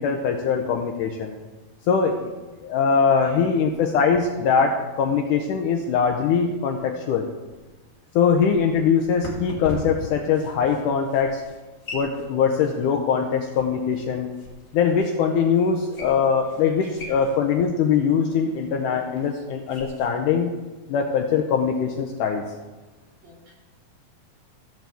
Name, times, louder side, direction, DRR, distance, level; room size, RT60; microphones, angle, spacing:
voice 1, 0.0-1.3 1.9-2.3 2.6-7.3 8.2-11.4 11.9-14.3 14.7-20.5 20.9-22.4, left 6 dB, 80° left, 2 dB, 1.9 m, -22 dB
voice 2, 2.9-3.5 16.6-17.3 23.2-23.5, right 1 dB, 70° right, -8 dB, 5.6 m, -51 dB
sound 1, 7.4-20.1, left 1 dB, 50° left, 0.7 m, -41 dB
15.5 x 7.6 x 3.4 m, 1.2 s
omnidirectional pair, 4.3 m